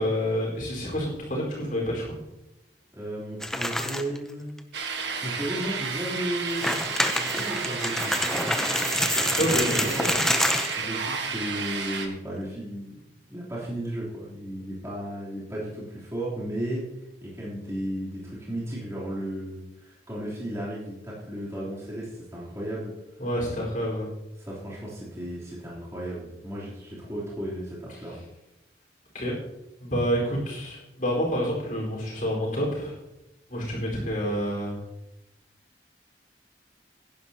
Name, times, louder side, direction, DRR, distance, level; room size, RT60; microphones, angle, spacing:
voice 1, 0.0-2.2 9.4-10.2 23.2-24.1 29.1-29.3 29.8-33.0 33.5-34.8, equal, 45° left, -3 dB, 4.5 m, -28 dB
voice 2, 2.9-4.5 5.2-6.8 7.1-8.3 9.1-10.1 10.8-12.9 13.3-16.8 17.2-22.9 24.4-28.2, right 1 dB, 15° right, -8 dB, 3.4 m, -34 dB
sound 1, 3.4-4.2 4.6-4.7 5.2-5.3 6.4-10.8, left 1 dB, 5° left, 0.6 m, -27 dB
sound 2, 4.7-12.1, right 5 dB, 85° right, 1.4 m, -32 dB
16.5 x 10.5 x 2.9 m, 0.91 s
head